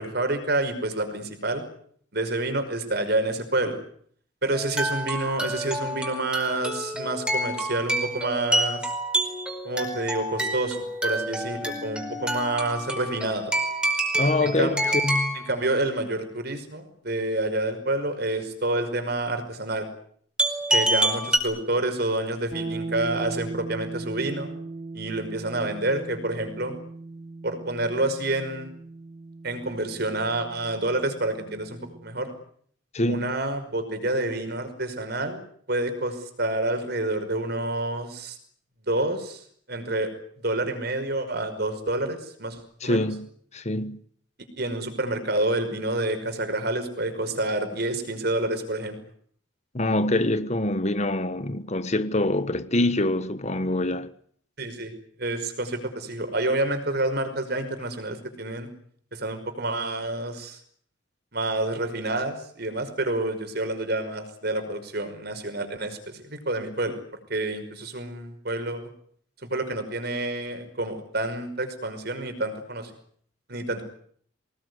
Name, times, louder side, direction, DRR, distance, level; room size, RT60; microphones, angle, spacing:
voice 1, 0.0-1.6 2.1-3.8 4.4-8.9 9.6-13.5 14.4-15.0 15.3-19.9 20.7-24.5 24.9-26.8 27.4-28.7 29.4-32.3 33.1-35.4 35.7-38.4 38.9-39.4 39.7-40.1 40.4-43.1 44.4-49.0 54.6-54.9 55.2-58.7 59.1-60.6 61.3-67.0 67.3-68.8 69.4-72.9 73.5-73.8, right 2 dB, 55° right, 5.6 m, -28 dB
sound 1, 4.5-15.5 20.4-21.4, right 1 dB, 5° right, 5.0 m, -27 dB
voice 2, 14.2-15.4 32.9-33.3 42.8-43.3 43.5-44.0 49.7-54.1, left 1 dB, 35° left, 1.3 m, -25 dB
sound 2, 22.5-32.3, right 3 dB, 40° right, 3.9 m, -38 dB
25.0 x 20.0 x 9.7 m
head